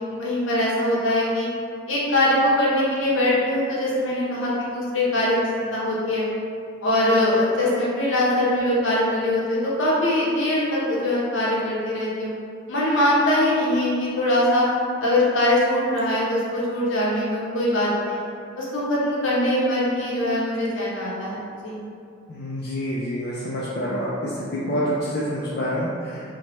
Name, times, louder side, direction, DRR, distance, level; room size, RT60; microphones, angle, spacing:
voice 1, 0.0-1.5 1.9-6.3 6.8-12.3 12.7-14.7 15.0-18.2 18.6-21.4 21.6-21.8, left 1 dB, 75° left, -6 dB, 0.7 m, -22 dB
voice 2, 22.3-26.2, equal, 50° left, -6 dB, 0.3 m, -27 dB
2.9 x 2.1 x 2.9 m, 2.4 s
head